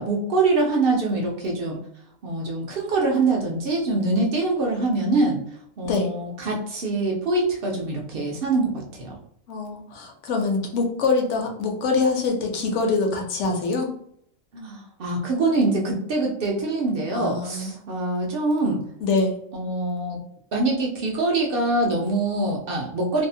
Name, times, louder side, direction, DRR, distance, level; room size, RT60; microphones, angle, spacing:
voice 1, 0.0-1.8 2.2-5.4 5.8-9.1 14.5-18.8 19.5-20.2 20.5-23.3, right 2 dB, 65° right, -1 dB, 0.5 m, -24 dB
voice 2, 9.5-13.9 17.1-17.8 19.0-19.4, left 3 dB, 65° left, 2 dB, 0.9 m, -24 dB
2.7 x 2.0 x 2.6 m, 0.67 s
omnidirectional pair, 1.4 m